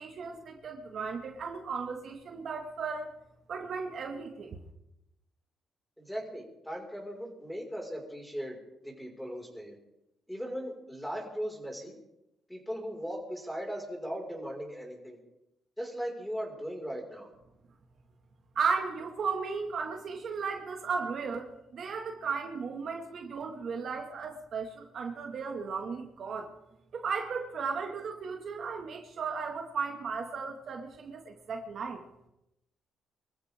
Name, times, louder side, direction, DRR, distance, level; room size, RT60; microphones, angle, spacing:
voice 1, 0.0-3.1 3.5-4.6 18.6-26.5 26.9-32.0, right 5 dB, 60° right, 2 dB, 2.3 m, -35 dB
voice 2, 6.0-8.6 8.8-9.8 10.3-11.9 12.5-15.2 15.8-17.3, equal, 5° left, 0 dB, 5.7 m, -38 dB
25.0 x 14.5 x 3.8 m, 0.87 s
cardioid pair, 90°, 0 cm